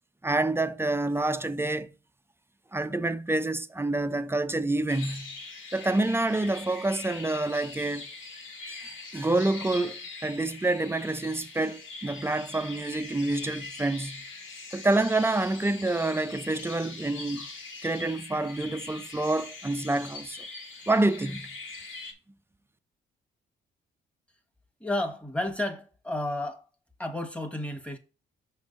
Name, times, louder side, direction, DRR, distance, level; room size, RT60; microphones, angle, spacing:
voice 1, 0.2-1.9 2.7-5.4 5.7-8.1 8.7-14.2 14.7-17.5 17.8-20.4 20.9-21.5, right 2 dB, 10° right, 0.4 m, -27 dB
sound 1, 4.9-22.1, left 3 dB, 80° left, 1.6 m, -42 dB
voice 2, 24.8-26.6 27.0-28.0, left 1 dB, 5° left, 1.2 m, -31 dB
6.3 x 3.4 x 5.2 m
cardioid pair, 90°, 20 cm